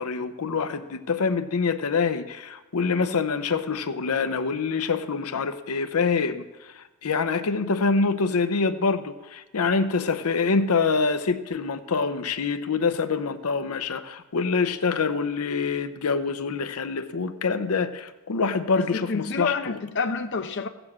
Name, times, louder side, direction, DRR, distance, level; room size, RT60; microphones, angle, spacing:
voice 1, 0.0-19.8, left 4 dB, 85° left, 0.7 m, -25 dB
voice 2, 18.8-20.7, left 4 dB, 55° left, 0.7 m, -28 dB
16.0 x 7.0 x 7.2 m
head